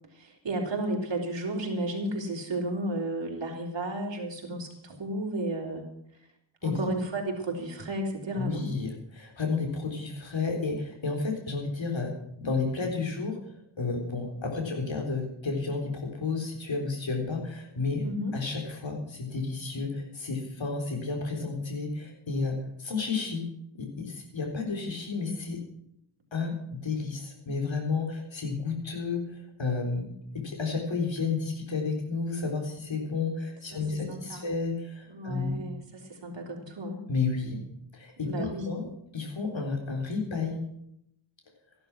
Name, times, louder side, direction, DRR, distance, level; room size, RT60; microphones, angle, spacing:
voice 1, 0.1-5.8 6.6-8.7 18.0-18.3 33.7-34.5 35.1-37.0 38.2-38.7, right 1 dB, 65° right, 0 dB, 3.7 m, -33 dB
voice 2, 8.3-18.0 18.3-23.4 23.7-25.6 26.3-35.7 37.1-37.6 37.9-38.8 39.1-40.6, left 4 dB, 70° left, 1 dB, 4.0 m, -32 dB
14.0 x 12.0 x 6.1 m, 0.76 s
wide cardioid pair, 125°, 47 cm